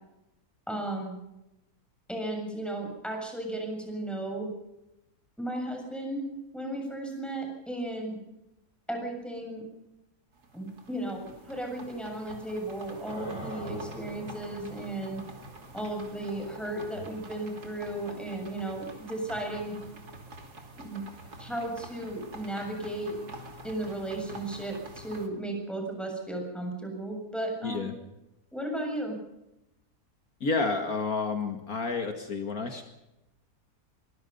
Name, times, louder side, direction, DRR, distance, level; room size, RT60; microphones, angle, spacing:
voice 1, 0.7-1.2 2.1-4.5 5.4-6.3 6.5-8.2 8.9-9.6 10.5-15.2 15.7-19.8 20.8-21.1 21.4-23.2 23.6-27.8 28.5-29.2, right 1 dB, ahead, 2 dB, 7.0 m, -35 dB
sound 1, 10.3-25.3, right 2 dB, 75° right, 3.4 m, -47 dB
sound 2, 13.1-20.0, right 1 dB, 45° right, 4.0 m, -46 dB
voice 2, 27.6-27.9 30.4-32.8, left 4 dB, 65° left, 5 dB, 2.4 m, -30 dB
24.0 x 22.0 x 5.5 m, 0.92 s
omnidirectional pair, 1.7 m